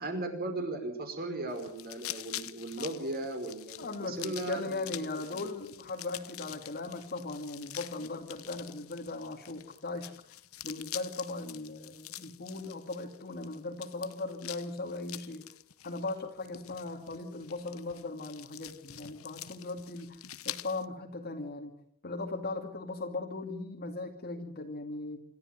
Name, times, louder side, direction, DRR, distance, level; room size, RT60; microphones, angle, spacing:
voice 1, 0.0-5.0 5.3-5.4, right 2 dB, 45° right, 5 dB, 5.3 m, -37 dB
sound 1, 1.5-20.8, left 13 dB, 70° left, 1.0 m, -46 dB
voice 2, 3.8-10.1 10.6-15.5 15.8-20.2 20.4-21.7 22.0-25.2, left 3 dB, 45° left, 2 dB, 2.4 m, -38 dB
26.5 x 13.5 x 8.0 m, 0.67 s
head